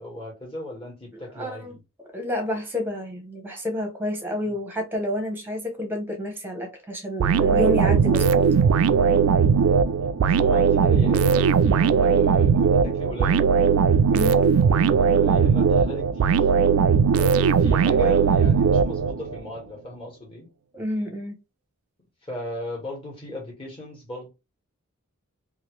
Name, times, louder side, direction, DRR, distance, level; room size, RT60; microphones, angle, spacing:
voice 1, 0.0-1.8 4.4-4.5 10.0-11.5 12.0-13.5 14.9-16.5 17.2-20.5 22.3-24.3, left 1 dB, 25° left, 1.4 m, -37 dB
voice 2, 1.3-1.7 2.1-8.3 14.1-14.4 20.7-21.4, left 1 dB, 10° right, 0.8 m, -29 dB
sound 1, 7.2-19.4, right 6 dB, 75° right, 0.3 m, -19 dB
2.9 x 2.5 x 3.0 m
head